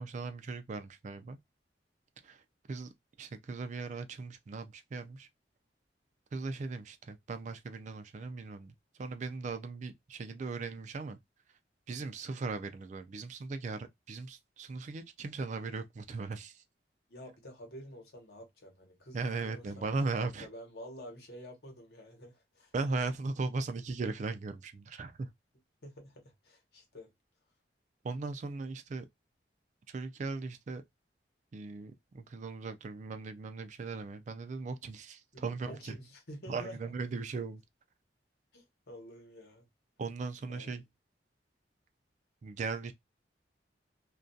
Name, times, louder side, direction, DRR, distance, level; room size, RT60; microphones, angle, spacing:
voice 1, 0.0-1.4 2.2-2.4 2.7-2.9 3.2-5.3 6.3-8.7 9.0-11.2 11.9-16.6 19.1-20.5 22.7-25.3 28.0-29.1 29.9-30.8 31.5-36.0 36.5-37.6 40.0-40.8 42.4-42.9, right 3 dB, 40° right, 0.3 m, -38 dB
voice 2, 17.1-22.7 25.8-27.1 35.3-36.9 38.5-39.7 40.5-40.8, equal, 65° left, 0.9 m, -49 dB
2.3 x 2.2 x 2.5 m
head